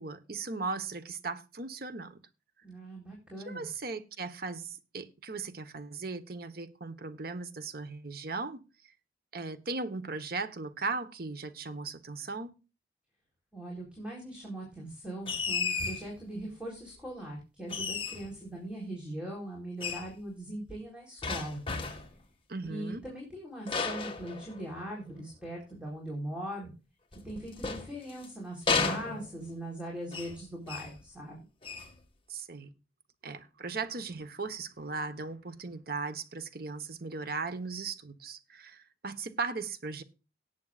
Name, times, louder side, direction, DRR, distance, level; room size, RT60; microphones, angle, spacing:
voice 1, 0.0-2.2 3.4-8.6 9.3-12.5 22.5-23.0 32.3-32.7 33.2-40.0, right 4 dB, 55° right, 1.3 m, -37 dB
voice 2, 2.6-3.7 13.5-21.6 22.6-26.7 27.1-31.5, right 1 dB, 5° right, 4.1 m, -40 dB
sound 1, 15.3-16.1 17.7-18.4 19.8-20.1 21.2-22.2 23.7-24.9 27.1-28.3 28.7-29.6 30.1-30.4 30.7-31.0 31.6-31.9, left 5 dB, 30° left, 1.9 m, -33 dB
18.5 x 8.4 x 2.5 m
head